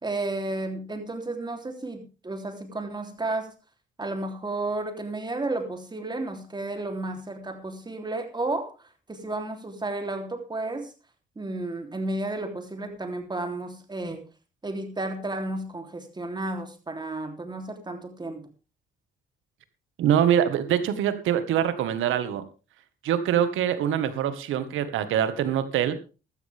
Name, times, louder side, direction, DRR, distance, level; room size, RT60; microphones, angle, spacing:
voice 1, 0.0-3.5 4.0-10.9 11.3-14.3 14.6-18.5, right 2 dB, 20° right, 5 dB, 3.4 m, -32 dB
voice 2, 20.0-22.4 23.0-25.9, right 10 dB, 85° right, 11 dB, 1.7 m, -24 dB
15.5 x 12.5 x 3.6 m, 0.32 s
cardioid pair, 90°, 20 cm